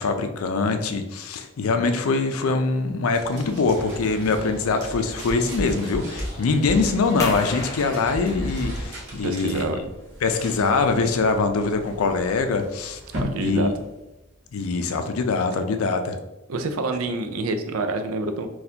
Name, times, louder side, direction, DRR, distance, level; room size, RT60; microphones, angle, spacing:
voice 1, 0.0-9.7 10.2-13.0 13.4-13.7 14.5-16.2, left 4 dB, 80° left, 7 dB, 0.4 m, -23 dB
sound 1, 3.1-14.5, equal, 55° right, 1.1 m, -40 dB
sound 2, 3.6-8.9, equal, 40° right, 1.4 m, -35 dB
sound 3, 7.2-12.5, left 2 dB, 15° left, 0.5 m, -38 dB
voice 2, 9.2-9.8 13.2-13.7 16.5-18.5, right 2 dB, 80° right, 7 dB, 0.4 m, -27 dB
4.1 x 2.3 x 2.7 m, 0.97 s
head